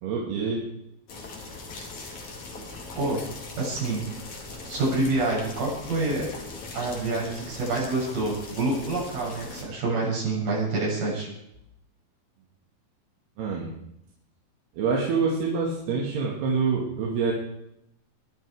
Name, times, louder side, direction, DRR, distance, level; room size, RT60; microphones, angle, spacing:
voice 1, 0.0-0.7 13.4-13.8 14.8-17.3, right 5 dB, 85° right, -3 dB, 4.2 m, -26 dB
sound 1, 1.1-9.6, left 3 dB, 50° left, 3.8 m, -40 dB
voice 2, 3.6-4.0 4.6-6.3 6.7-11.3, right 2 dB, 65° right, -5 dB, 9.2 m, -27 dB
22.0 x 11.0 x 4.9 m, 0.80 s
omnidirectional pair, 4.5 m